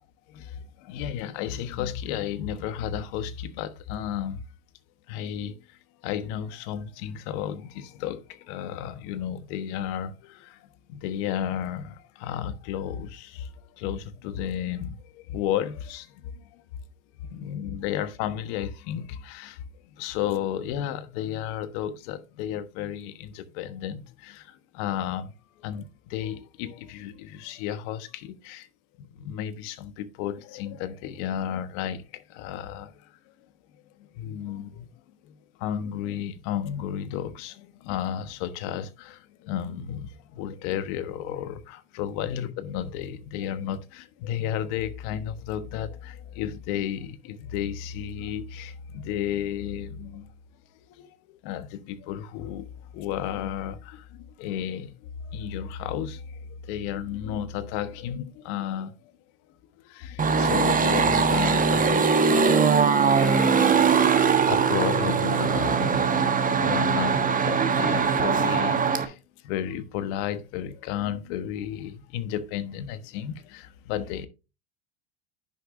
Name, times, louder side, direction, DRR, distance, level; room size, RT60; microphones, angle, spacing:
voice 1, 0.3-4.4 5.1-16.6 17.3-19.6 20.0-25.3 25.6-28.7 29.0-33.1 34.0-34.9 35.2-50.3 51.0-59.1 59.8-66.3 66.6-74.3, left 10 dB, 65° left, 1.3 m, -33 dB
sound 1, 60.2-69.0, right 5 dB, 20° right, 1.4 m, -21 dB
10.0 x 7.0 x 2.6 m
supercardioid pair, 110°, 36 cm